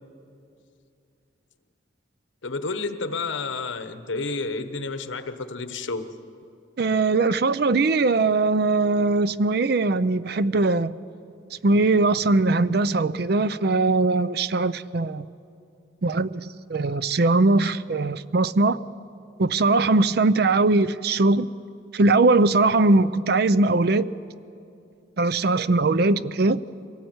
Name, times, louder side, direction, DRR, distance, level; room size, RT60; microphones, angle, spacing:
voice 1, 2.4-6.1, left 3 dB, 80° left, 1.1 m, -30 dB
voice 2, 6.8-10.9 11.6-15.2 16.0-18.8 19.4-21.5 21.9-24.2 25.2-26.6, right 3 dB, 55° right, 0.5 m, -21 dB
24.0 x 17.5 x 8.0 m
head